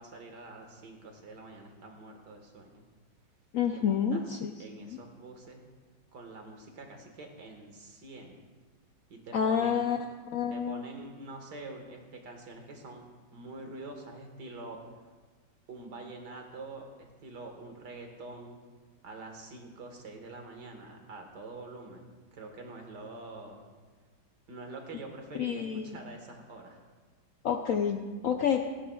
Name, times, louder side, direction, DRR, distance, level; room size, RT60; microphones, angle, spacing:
voice 1, 0.0-2.9 3.7-5.6 6.1-8.4 9.1-9.8 10.5-13.0 13.3-14.8 15.7-18.6 19.0-23.7 24.5-26.8, right 2 dB, 70° right, 3 dB, 2.1 m, -46 dB
voice 2, 3.5-4.5 4.8-5.0 9.3-10.0 10.3-10.9 25.3-25.9 27.4-28.6, left 7 dB, 65° left, 4 dB, 0.8 m, -29 dB
17.0 x 15.0 x 2.3 m, 1.4 s
omnidirectional pair, 1.9 m